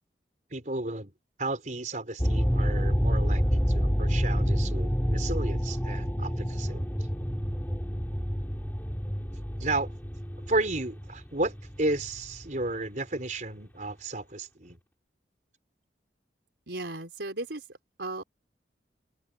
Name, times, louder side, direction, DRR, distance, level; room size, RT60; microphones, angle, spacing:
voice 1, 0.5-1.1 1.4-6.9 9.6-9.9 10.5-14.8, right 2 dB, 45° right, 4.6 m, -33 dB
sound 1, 2.2-13.2, equal, 10° left, 4.4 m, -28 dB
voice 2, 16.7-17.6 18.0-18.2, right 2 dB, 80° right, 4.3 m, -35 dB
open air
head